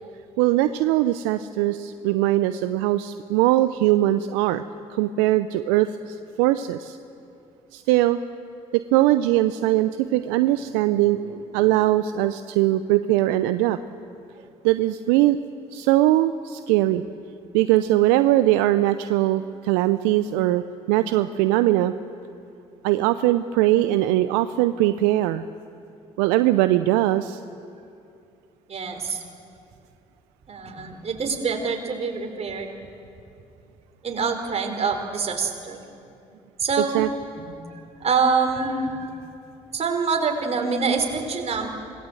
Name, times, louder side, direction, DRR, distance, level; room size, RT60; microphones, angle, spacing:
voice 1, 0.4-4.6 4.9-7.0 7.7-8.2 8.9-13.8 14.6-15.4 15.7-17.0 17.5-21.9 22.8-25.4 26.2-27.4 36.9-37.1, right 15 dB, 75° right, 12 dB, 0.7 m, -21 dB
voice 2, 28.7-29.2 30.5-32.7 34.0-35.8 36.6-37.0 37.7-39.1 39.7-41.7, right 5 dB, 45° right, 4 dB, 4.6 m, -25 dB
26.0 x 19.5 x 7.9 m, 2.6 s
hypercardioid pair, 50°, 15 cm